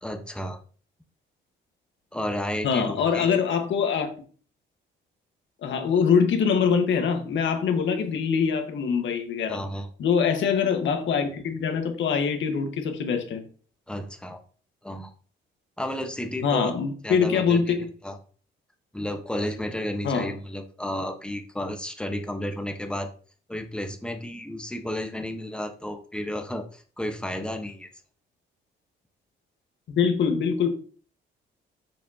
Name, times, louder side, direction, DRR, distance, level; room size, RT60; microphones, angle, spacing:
voice 1, 0.0-0.6 2.1-3.3 9.5-9.9 13.9-14.4 14.8-15.1 15.8-16.7 17.0-17.8 18.0-18.2 18.9-23.1 23.5-27.9, left 1 dB, 5° left, 1.2 m, -32 dB
voice 2, 2.6-4.1 5.6-9.6 10.0-13.4 16.4-17.9 20.0-20.3 29.9-30.7, left 6 dB, 70° left, 1.6 m, -24 dB
7.1 x 5.9 x 2.9 m
cardioid pair, 90°, 20 cm